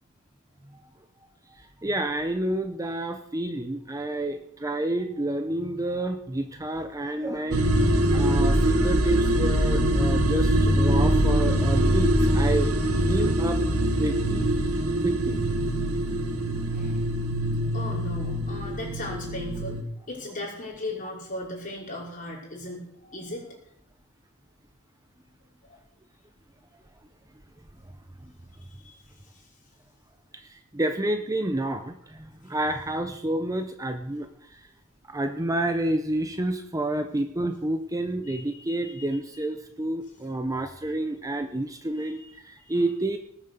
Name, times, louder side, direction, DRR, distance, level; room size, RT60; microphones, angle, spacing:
voice 1, 1.5-7.8 8.1-13.6 14.0-15.9 28.2-28.3 30.3-34.7 35.1-43.2, right 1 dB, 15° right, 7 dB, 0.8 m, -29 dB
sound 1, 7.5-19.8, right 1 dB, 90° right, 1.9 m, -23 dB
voice 2, 17.7-19.8 20.1-23.6 25.7-25.8 28.8-29.0 29.3-29.4 38.3-39.1 42.0-42.3 42.7-42.8, left 1 dB, 40° left, -3 dB, 5.2 m, -37 dB
19.0 x 7.4 x 6.9 m, 0.73 s
head